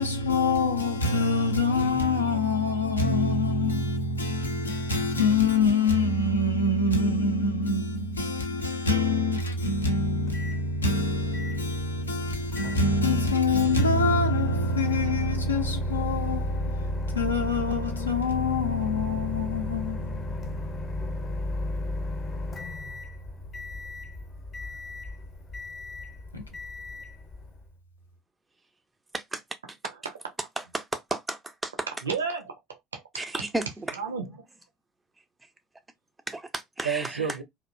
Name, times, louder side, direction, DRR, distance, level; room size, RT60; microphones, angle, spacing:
voice 1, 0.0-20.7 26.3-26.4, left 2 dB, 80° left, 0.4 m, -25 dB
Microwave oven, 9.7-27.7, left 3 dB, 30° left, 0.6 m, -36 dB
voice 2, 30.6-31.4 31.6-31.9 33.1-33.9 36.3-37.4, right 2 dB, 15° right, 0.3 m, -33 dB
voice 3, 32.0-33.0 33.9-34.3 36.8-37.4, right 6 dB, 75° right, 0.5 m, -31 dB
2.4 x 2.1 x 2.4 m
figure-of-eight pair, 65°, 0 cm